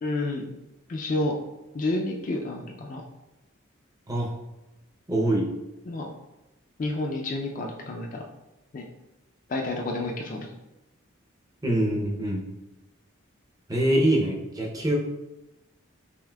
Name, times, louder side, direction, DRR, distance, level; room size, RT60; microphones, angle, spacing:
voice 1, 0.0-0.4 0.9-1.4 1.7-3.0 5.9-6.1 6.8-8.2 8.7-8.8 9.5-10.5, left 2 dB, 40° left, 2 dB, 0.3 m, -29 dB
voice 2, 5.1-5.5 11.6-12.5 13.7-15.0, right 1 dB, 15° right, -2 dB, 0.5 m, -24 dB
5.6 x 2.5 x 2.2 m, 0.98 s
head